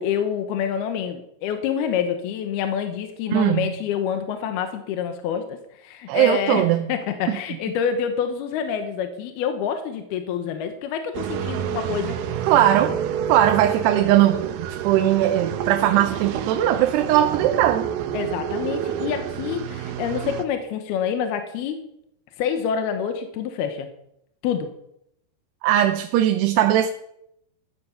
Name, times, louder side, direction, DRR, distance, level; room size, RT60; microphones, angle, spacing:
voice 1, 0.0-12.2 18.1-21.9 22.4-23.9 24.4-24.7, left 8 dB, 75° left, 7 dB, 3.0 m, -27 dB
voice 2, 3.3-3.7 6.1-6.9 7.3-7.4 12.5-13.0 13.3-17.9 25.6-26.9, right 12 dB, 85° right, 7 dB, 2.9 m, -19 dB
sound 1, 11.1-20.4, right 9 dB, 70° right, 2.6 m, -29 dB
15.5 x 11.0 x 7.1 m, 0.77 s
omnidirectional pair, 4.7 m